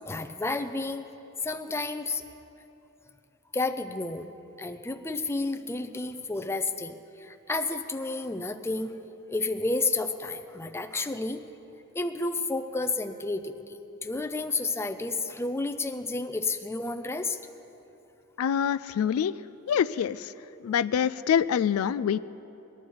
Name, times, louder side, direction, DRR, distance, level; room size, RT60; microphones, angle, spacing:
voice 1, 0.1-1.1 1.4-2.2 3.5-4.3 4.6-8.9 9.3-11.4 11.9-17.4, left 3 dB, 10° left, 8 dB, 0.5 m, -31 dB
voice 2, 18.4-19.3 19.7-20.3 20.6-22.2, left 8 dB, 80° left, 15 dB, 0.3 m, -25 dB
20.0 x 11.5 x 4.7 m, 3.0 s
head